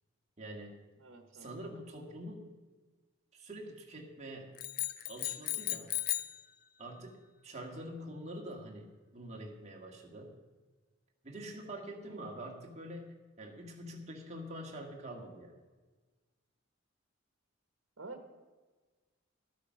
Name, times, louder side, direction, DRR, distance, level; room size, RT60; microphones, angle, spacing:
voice 1, 0.4-0.7 1.3-2.4 3.3-4.5 5.1-5.9 6.8-8.9 9.1-10.4 11.2-15.5, right 1 dB, 35° right, 0 dB, 1.8 m, -45 dB
voice 2, 1.0-1.5 12.0-12.5 18.0-18.3, right 3 dB, 70° right, 5 dB, 1.2 m, -50 dB
sound 1, 4.6-6.4, left 14 dB, 45° left, 0.5 m, -35 dB
13.0 x 8.4 x 6.3 m, 1.3 s
head